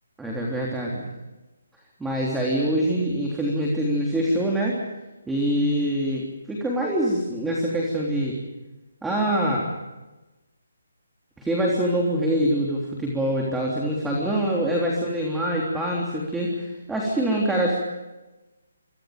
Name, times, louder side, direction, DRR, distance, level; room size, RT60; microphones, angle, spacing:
voice 1, 0.2-1.0 2.0-4.8 5.3-6.2 6.5-8.4 9.0-9.6 11.4-17.7, right 1 dB, 5° right, -3 dB, 3.4 m, -24 dB
26.5 x 25.5 x 5.2 m, 1.1 s
hypercardioid pair, 160°, 0 cm